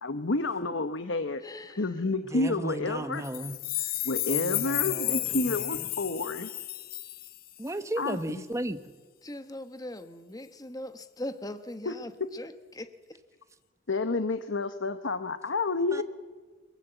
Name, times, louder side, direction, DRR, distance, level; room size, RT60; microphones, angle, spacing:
voice 1, 0.0-1.4 1.8-3.2 4.0-6.5 8.0-8.4 11.9-12.0 12.2-12.3 13.9-16.0, left 3 dB, 80° left, 10 dB, 1.0 m, -30 dB
voice 2, 1.4-1.9 9.2-13.2, left 1 dB, 20° left, 10 dB, 1.1 m, -40 dB
voice 3, 2.3-3.6 4.3-5.9 7.6-8.8 15.9-16.0, right 1 dB, 15° right, 10 dB, 1.1 m, -35 dB
sound 1, 3.2-7.7, left 15 dB, 50° left, 0.7 m, -32 dB
22.0 x 22.0 x 8.1 m, 1.4 s
head